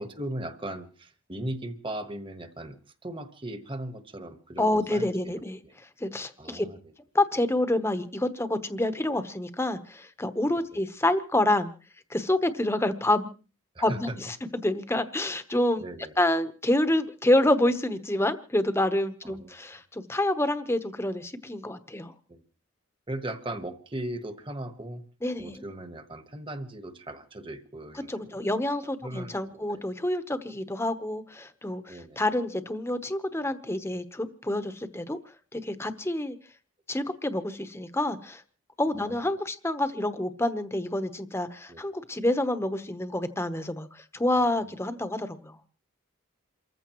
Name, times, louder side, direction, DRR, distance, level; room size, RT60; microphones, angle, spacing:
voice 1, 0.0-5.3 5.6-5.7 6.4-6.9 10.7-10.8 13.7-14.2 15.8-16.1 19.2-19.6 22.3-22.4 23.1-25.1 25.4-28.6 29.0-29.8 31.9-32.2 38.9-39.3 41.7-41.8, right 1 dB, 25° right, 9 dB, 1.3 m, -38 dB
voice 2, 4.6-5.6 6.0-6.6 7.1-11.7 12.1-13.3 13.8-15.8 16.2-22.1 25.2-25.6 28.1-35.2 35.5-36.4 36.9-38.4 38.8-45.6, left 1 dB, 10° left, 11 dB, 1.0 m, -27 dB
28.5 x 14.5 x 3.1 m, 0.36 s
head